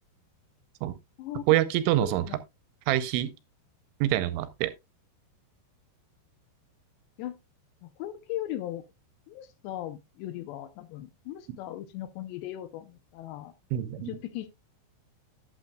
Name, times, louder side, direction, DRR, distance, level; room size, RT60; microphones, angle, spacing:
voice 1, 1.5-2.2 2.9-3.3 4.0-4.7 13.7-14.2, right 14 dB, 85° right, 3.0 m, -25 dB
voice 2, 2.0-2.4 7.2-7.4 7.8-8.8 9.3-13.5 14.1-14.5, left 13 dB, 80° left, 2.6 m, -38 dB
11.5 x 8.3 x 2.2 m
omnidirectional pair, 5.5 m